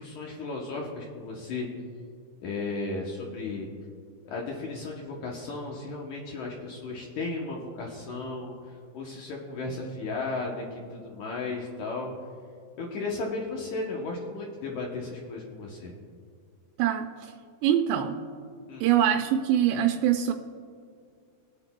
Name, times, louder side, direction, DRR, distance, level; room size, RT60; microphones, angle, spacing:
voice 1, 0.0-1.7 2.4-3.7 4.2-12.1 12.8-15.9 18.7-18.9, left 3 dB, 90° left, -2 dB, 1.7 m, -35 dB
voice 2, 16.8-17.3 17.6-18.2 18.8-20.3, right 10 dB, 85° right, 4 dB, 2.7 m, -24 dB
22.0 x 9.3 x 2.2 m, 2.3 s
omnidirectional pair, 5.0 m